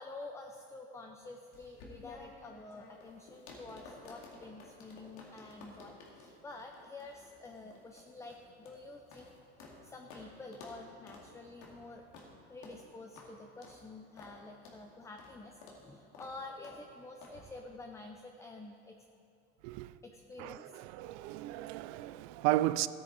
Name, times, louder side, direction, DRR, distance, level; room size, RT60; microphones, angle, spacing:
voice 1, 0.0-9.3 9.6-12.1 12.5-19.0 20.0-20.6 21.9-22.0, left 2 dB, 10° left, 0.5 m, -49 dB
sound 1, 1.5-9.8 10.1-10.3 10.5-10.8 11.1-11.3 11.6-11.8 12.1-12.3 12.6-12.8 13.2-13.3 13.6-13.8 14.2-14.4 14.6-14.8 15.2-15.3 15.6-15.8 16.1-16.3 16.6-16.8 17.2-17.4, left 3 dB, 80° left, 2.5 m, -53 dB
voice 2, 19.6-19.9 20.4-22.9, right 16 dB, 70° right, 0.5 m, -34 dB
14.0 x 9.4 x 4.1 m
supercardioid pair, 130°, 34 cm